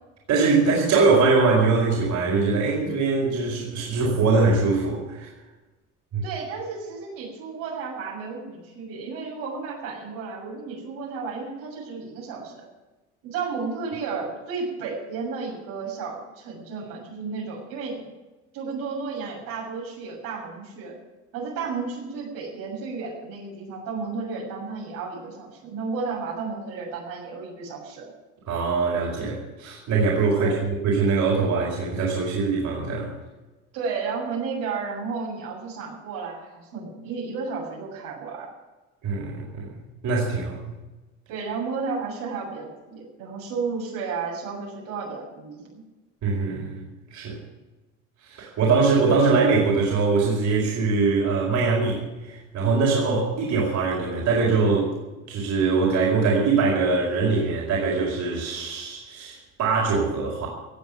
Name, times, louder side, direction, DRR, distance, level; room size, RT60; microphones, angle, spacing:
voice 1, 0.3-5.3 6.1-6.2 28.5-33.1 39.0-40.8 46.2-46.8 47.1-47.4 48.2-54.9 55.3-60.5, right 4 dB, 55° right, -3 dB, 5.0 m, -22 dB
voice 2, 6.2-12.6 13.2-18.1 18.5-21.0 21.3-28.1 30.3-30.6 33.7-38.5 41.3-45.8, right 4 dB, 80° right, -2 dB, 6.9 m, -33 dB
17.5 x 7.8 x 9.3 m, 1.1 s
cardioid pair, 110°, 34 cm